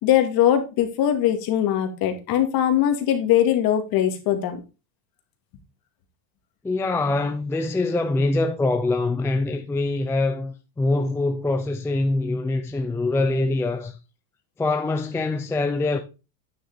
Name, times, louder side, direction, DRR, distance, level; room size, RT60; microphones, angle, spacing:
voice 1, 0.0-4.6, left 11 dB, 50° left, 2.1 m, -21 dB
voice 2, 6.6-13.9 14.6-16.0, left 2 dB, 5° left, 0.5 m, -24 dB
9.5 x 6.6 x 3.6 m
supercardioid pair, 145°, 46 cm